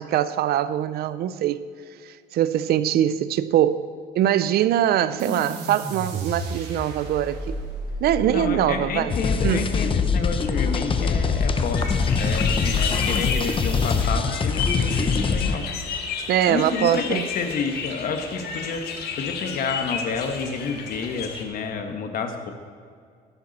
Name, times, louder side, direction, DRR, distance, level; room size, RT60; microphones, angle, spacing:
voice 1, 0.0-1.6 2.3-3.9 4.2-7.6 8.0-9.1 9.4-9.7 16.3-17.2, right 11 dB, 70° right, 0.6 m, -22 dB
sound 1, 5.2-14.1, left 1 dB, 90° right, 3.1 m, -34 dB
voice 2, 8.3-15.7 16.5-22.5, left 5 dB, 55° left, 1.8 m, -30 dB
sound 2, 9.1-15.5, left 5 dB, 30° left, 1.0 m, -23 dB
sound 3, 11.7-21.4, left 6 dB, 75° left, 1.7 m, -32 dB
15.0 x 12.0 x 4.3 m
cardioid pair, 110°, 17 cm